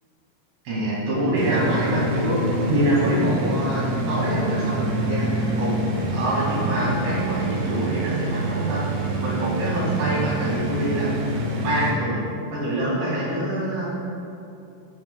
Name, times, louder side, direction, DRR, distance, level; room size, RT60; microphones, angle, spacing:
voice 1, 0.7-5.7 6.1-8.8 9.2-11.1 11.6-12.2 12.5-13.9, right 1 dB, 60° right, -6 dB, 3.9 m, -25 dB
sound 1, 1.3-11.9, right 2 dB, 90° right, 1.7 m, -26 dB
17.0 x 6.0 x 2.3 m, 2.6 s
omnidirectional pair, 5.1 m